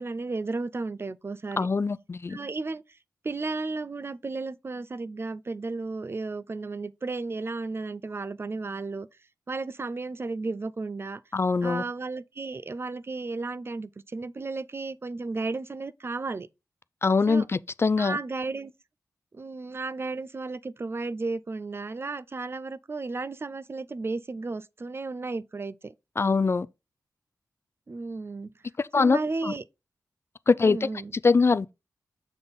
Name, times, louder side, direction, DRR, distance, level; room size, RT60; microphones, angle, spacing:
voice 1, 0.0-1.7 2.3-3.0 3.2-9.1 9.5-11.2 11.6-16.5 17.3-17.5 18.0-18.7 19.3-25.9 27.9-28.5 29.0-29.6 30.6-31.1, right 3 dB, 40° right, 0.4 m, -34 dB
voice 2, 1.6-2.4 11.3-11.8 17.0-18.2 26.2-26.7 28.9-29.2 29.4-29.5 30.5-30.9 31.2-31.7, left 4 dB, 40° left, 0.3 m, -23 dB
6.9 x 3.7 x 4.0 m
cardioid pair, 65°, 7 cm